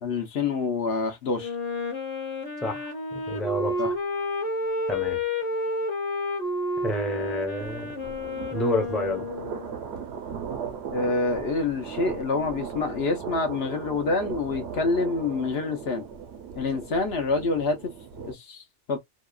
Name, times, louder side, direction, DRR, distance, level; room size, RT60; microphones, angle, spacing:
voice 1, 0.0-1.5 3.8-3.9 10.9-16.1 16.6-17.9 18.2-19.0, left 3 dB, 60° left, 0.9 m, -27 dB
Wind instrument woodwind instrument, 1.4-9.7, left 2 dB, 35° left, 0.9 m, -30 dB
voice 2, 2.6-3.9 4.9-5.2 6.8-7.9 8.5-9.3, left 1 dB, ahead, 0.6 m, -29 dB
sound 1, 7.6-18.3, right 7 dB, 65° right, 1.0 m, -38 dB
2.8 x 2.3 x 2.3 m
omnidirectional pair, 1.2 m